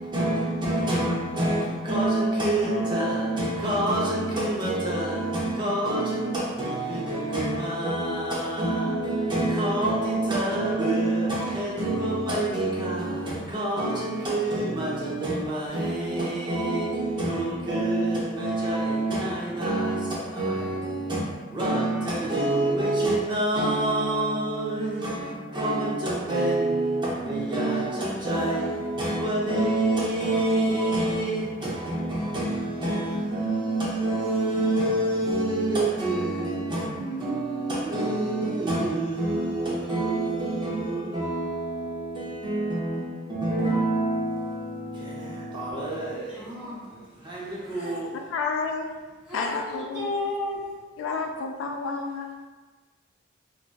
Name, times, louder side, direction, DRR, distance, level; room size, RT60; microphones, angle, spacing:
voice 1, 0.0-48.2, right 2 dB, 25° right, 0.5 m, -27 dB
voice 2, 46.3-46.9 47.7-48.1 49.3-50.6, left 2 dB, 10° right, 0.9 m, -33 dB
voice 3, 48.3-48.9 49.3-50.2 51.0-52.5, left 4 dB, 85° left, 0.3 m, -30 dB
2.5 x 2.2 x 2.2 m
head